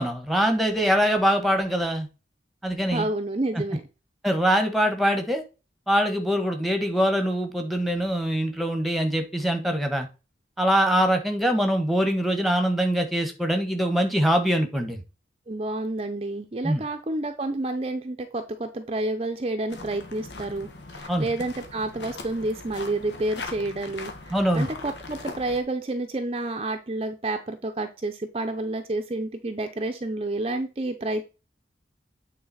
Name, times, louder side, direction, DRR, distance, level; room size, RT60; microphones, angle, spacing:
voice 1, 0.0-2.1 2.6-3.1 3.5-3.6 4.2-5.4 5.9-10.1 10.6-15.0 16.6-16.8 21.1-21.3 24.3-24.7, equal, ahead, 5 dB, 1.1 m, -23 dB
voice 2, 2.9-3.8 15.5-20.7 21.0-31.2, right 2 dB, 35° right, 6 dB, 0.6 m, -29 dB
sound 1, 19.7-25.6, left 3 dB, 80° left, 1.2 m, -40 dB
8.7 x 3.9 x 4.1 m, 0.30 s
head